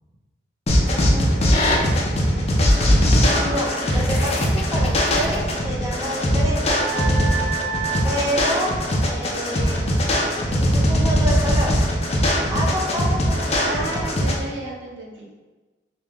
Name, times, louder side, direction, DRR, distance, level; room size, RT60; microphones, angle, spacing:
sound 1, 0.7-14.4, equal, 35° left, 0.5 m, -20 dB
voice 1, 0.8-1.9 3.2-6.8 8.0-8.7 9.1-9.8 10.5-11.8 12.5-14.0, equal, 20° right, -3 dB, 0.6 m, -28 dB
sound 2, 6.7-9.3, right 5 dB, 40° right, 1.2 m, -29 dB
voice 2, 8.0-8.4 12.3-12.7 13.6-15.3, right 2 dB, 85° right, -1 dB, 0.7 m, -34 dB
3.5 x 2.7 x 2.9 m, 1.2 s
head